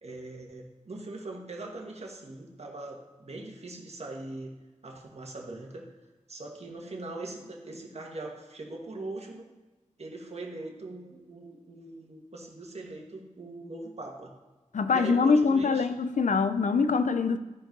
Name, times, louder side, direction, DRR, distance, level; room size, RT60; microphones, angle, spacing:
voice 1, 0.0-4.6 4.8-5.9 6.3-9.5 10.0-14.3 14.9-16.0, right 2 dB, 55° right, 0 dB, 1.7 m, -41 dB
voice 2, 14.7-17.4, left 4 dB, 75° left, 11 dB, 0.6 m, -24 dB
14.0 x 5.1 x 5.4 m, 1.2 s
cardioid pair, 55°, 13 cm